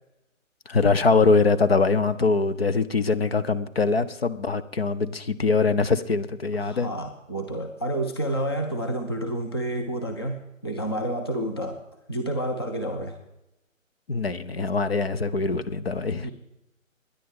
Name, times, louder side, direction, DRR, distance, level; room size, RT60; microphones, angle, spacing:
voice 1, 0.7-6.9 14.1-16.3, left 4 dB, 50° left, 11 dB, 0.8 m, -23 dB
voice 2, 6.6-11.8 12.1-13.2 16.2-16.3, right 1 dB, 20° left, 4 dB, 0.5 m, -29 dB
22.0 x 10.0 x 3.7 m, 0.92 s
figure-of-eight pair, 145°, 40 cm